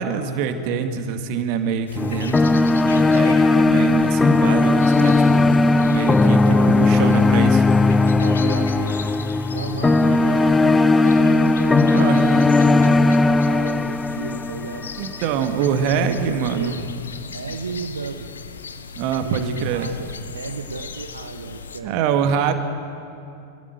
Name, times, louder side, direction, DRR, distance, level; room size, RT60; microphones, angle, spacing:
voice 1, 0.0-6.4 6.7-7.6 11.9-12.3 15.0-16.8 19.0-19.9 21.8-22.5, right 7 dB, 45° right, 7 dB, 1.8 m, -25 dB
sound 1, 1.9-21.8, left 5 dB, 70° left, 1.1 m, -38 dB
sound 2, 2.0-15.1, left 3 dB, 10° left, 0.5 m, -17 dB
voice 2, 6.2-6.9 8.2-9.2 9.5-14.9 15.2-16.9 17.3-18.3 19.2-22.0, right 4 dB, 75° right, 7 dB, 1.0 m, -33 dB
24.0 x 15.0 x 8.1 m, 2.6 s
figure-of-eight pair, 90°, 0 cm